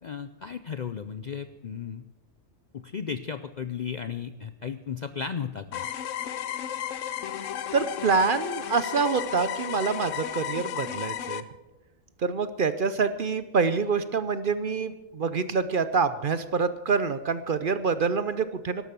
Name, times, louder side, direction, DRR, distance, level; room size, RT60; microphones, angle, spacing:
voice 1, 0.0-2.0 2.7-5.9, left 7 dB, 55° left, 11 dB, 0.5 m, -35 dB
sound 1, 5.7-11.4, left 10 dB, 70° left, 1.1 m, -33 dB
voice 2, 7.7-11.4 12.2-18.8, right 5 dB, 50° right, 12 dB, 0.7 m, -26 dB
12.5 x 12.0 x 6.8 m, 1.1 s
omnidirectional pair, 1.4 m